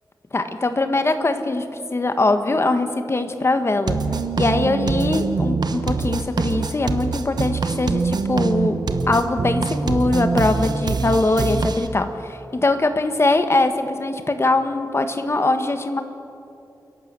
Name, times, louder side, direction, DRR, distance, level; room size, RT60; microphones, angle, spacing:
voice 1, 0.3-1.6 1.9-4.0 4.4-8.7 9.1-16.0, left 2 dB, 40° left, 8 dB, 1.5 m, -21 dB
sound 1, 3.9-11.9, right 4 dB, 75° right, 1.1 m, -24 dB
29.5 x 11.5 x 7.6 m, 2.8 s
wide cardioid pair, 105°, 7 cm